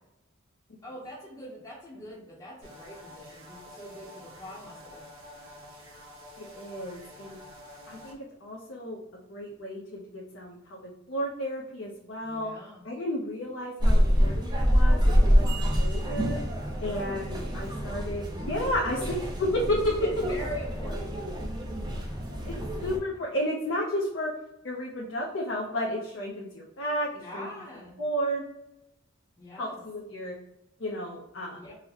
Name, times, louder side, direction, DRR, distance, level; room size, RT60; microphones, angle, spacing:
voice 1, 0.8-5.0 12.2-12.8 15.2-15.3 16.8-17.2 19.0-19.1 20.0-21.2 22.4-23.0 27.2-28.0 29.4-29.8 31.5-31.7, equal, 20° left, -8 dB, 0.7 m, -43 dB
sound 1, 2.6-8.1, left 1 dB, 75° right, 1.0 m, -48 dB
voice 2, 6.4-7.4 7.9-12.5 12.8-16.4 16.8-19.0 19.5-20.0 22.5-24.3 24.6-27.5 28.0-28.4 29.5-30.4 30.8-31.6, equal, 65° left, -2 dB, 0.6 m, -33 dB
sound 2, 13.8-23.0, equal, 20° right, 0.5 m, -26 dB
3.9 x 2.1 x 2.8 m, 0.87 s
head